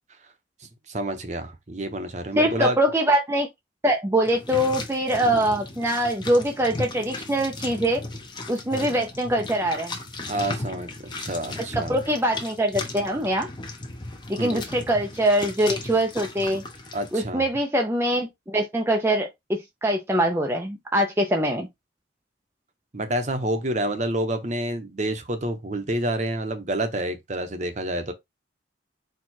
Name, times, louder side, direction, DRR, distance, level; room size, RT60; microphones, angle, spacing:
voice 1, 0.9-2.8 8.7-8.9 10.3-10.9 11.2-12.0 14.4-14.6 16.9-17.4 22.9-28.1, right 1 dB, 40° right, 0.8 m, -28 dB
voice 2, 2.4-3.5 3.8-8.0 8.5-10.0 11.7-13.5 14.3-16.6 17.1-21.7, right 1 dB, 15° right, 0.5 m, -23 dB
sound 1, 4.2-17.2, left 2 dB, 25° left, 0.8 m, -36 dB
4.6 x 2.3 x 4.3 m
head